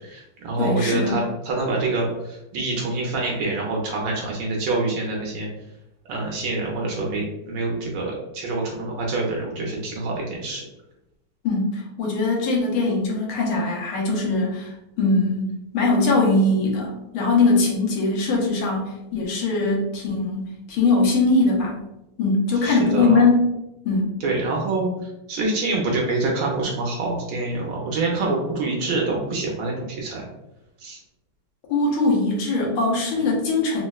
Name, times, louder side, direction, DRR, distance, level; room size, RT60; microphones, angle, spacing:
voice 1, 0.0-5.5 6.1-10.6 22.6-23.2 24.2-30.2 30.8-31.0, right 2 dB, 75° right, -2 dB, 1.2 m, -26 dB
voice 2, 0.6-1.2 11.4-21.8 22.2-23.5 23.8-24.1 31.7-33.8, left 3 dB, 80° left, -2 dB, 1.6 m, -21 dB
4.1 x 2.0 x 2.3 m, 0.88 s
omnidirectional pair, 2.4 m